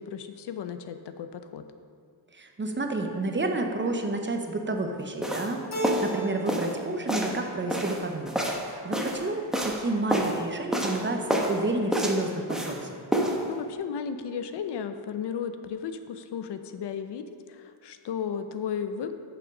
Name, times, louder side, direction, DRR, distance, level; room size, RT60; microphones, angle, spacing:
voice 1, 0.0-1.6 13.4-17.2 17.5-19.1, left 7 dB, 70° left, 9 dB, 0.6 m, -34 dB
voice 2, 2.3-8.3 8.6-12.9, right 2 dB, 25° right, 4 dB, 0.8 m, -30 dB
sound 1, 5.2-5.5 5.8-6.1 6.5-6.8 7.1-7.4 7.7-9.2 9.5-9.8 10.1-10.4 10.7-11.0 11.3-11.6 11.9-12.8 13.1-13.4, equal, ahead, 1.0 m, -28 dB
Keyboard (musical), 5.7-6.8 7.1-7.9, equal, 40° left, 1.5 m, -33 dB
6.7 x 5.9 x 5.3 m, 2.1 s
cardioid pair, 75°, 43 cm